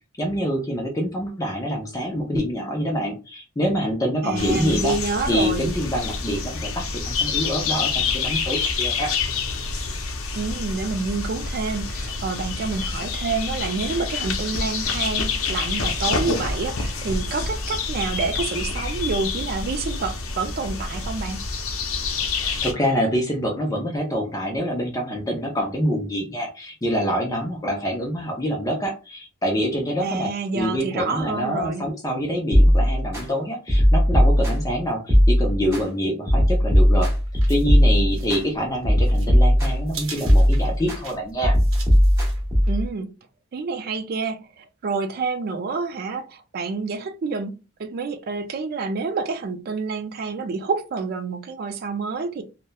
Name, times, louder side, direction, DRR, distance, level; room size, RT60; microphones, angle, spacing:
voice 1, 0.2-5.0 5.3-9.1 22.3-37.1 37.5-41.6, equal, 15° left, 0.5 m, -26 dB
voice 2, 4.2-5.7 10.3-21.4 30.0-31.8 42.7-43.1 43.5-52.4, right 4 dB, 50° right, 0.3 m, -28 dB
sound 1, 4.4-22.7, left 4 dB, 75° left, 0.5 m, -27 dB
sound 2, 32.5-33.2 33.7-34.7 35.1-35.8 36.3-38.4 38.8-39.9 40.2-41.0 41.4-42.8, equal, 15° right, 0.9 m, -18 dB
sound 3, 36.7-42.9, right 4 dB, 75° right, 0.7 m, -42 dB
2.8 x 2.1 x 2.2 m
head